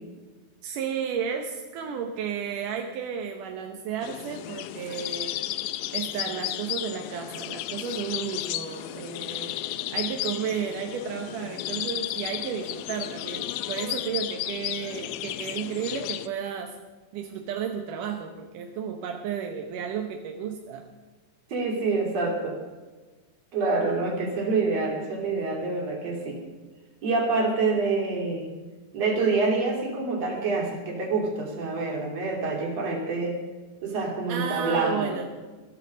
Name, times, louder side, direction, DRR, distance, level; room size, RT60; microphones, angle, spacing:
voice 1, 0.6-5.6 5.9-16.8 17.1-20.9 34.3-35.3, right 7 dB, 70° right, 3 dB, 2.0 m, -33 dB
sound 1, 4.0-16.3, left 14 dB, 90° left, 2.8 m, -33 dB
voice 2, 21.5-22.6 23.5-26.4 27.0-28.5 28.9-33.4 33.8-35.1, right 3 dB, 40° right, -1 dB, 3.8 m, -26 dB
15.5 x 13.5 x 5.2 m, 1.3 s
omnidirectional pair, 4.8 m